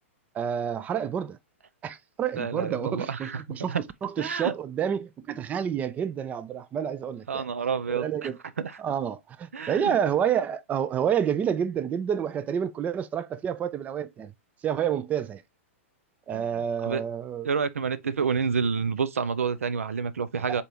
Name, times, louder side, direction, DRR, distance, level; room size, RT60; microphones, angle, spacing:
voice 1, 0.3-1.4 1.8-3.8 4.0-7.4 7.9-8.3 8.8-14.3 14.6-15.4 16.3-17.5 20.5-20.6, right 8 dB, 20° right, 0.4 m, -29 dB
voice 2, 2.4-3.4 3.7-3.8 4.2-4.5 7.3-8.3 8.6-8.8 9.5-10.0 16.3-17.0 17.4-20.6, right 6 dB, 90° right, 0.5 m, -29 dB
4.0 x 3.4 x 2.8 m
hypercardioid pair, 120°, 7 cm